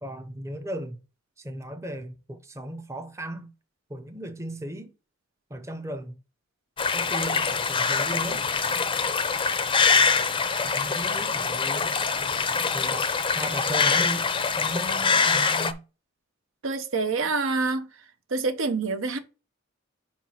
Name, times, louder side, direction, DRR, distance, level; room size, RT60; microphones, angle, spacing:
voice 1, 0.0-1.0 1.4-3.5 3.9-4.9 5.5-6.2 6.9-8.4 10.6-11.9 12.7-14.3 14.6-15.8, right 1 dB, 15° right, 0.7 m, -36 dB
sound 1, 6.8-15.7, left 5 dB, 25° left, 0.5 m, -24 dB
voice 2, 16.6-17.9 18.3-19.2, right 3 dB, 80° right, 0.9 m, -26 dB
4.8 x 4.6 x 5.6 m
head